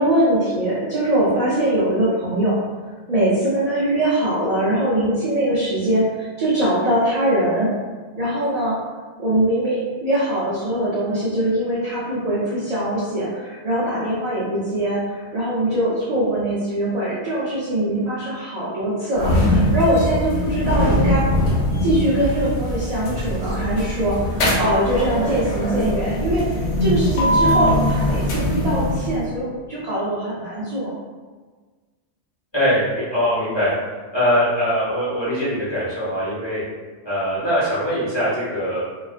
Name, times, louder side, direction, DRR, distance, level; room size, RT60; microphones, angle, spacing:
voice 1, 0.0-2.6 3.1-7.7 8.2-8.7 9.2-21.2 21.8-26.4 26.8-30.9, right 1 dB, 55° right, -8 dB, 0.4 m, -22 dB
sound 1, 19.1-29.3, left 1 dB, 90° left, 0.9 m, -21 dB
voice 2, 32.5-33.7 34.1-36.6 37.0-39.0, equal, 25° left, -11 dB, 0.9 m, -22 dB
2.3 x 2.2 x 2.4 m, 1.4 s
omnidirectional pair, 1.2 m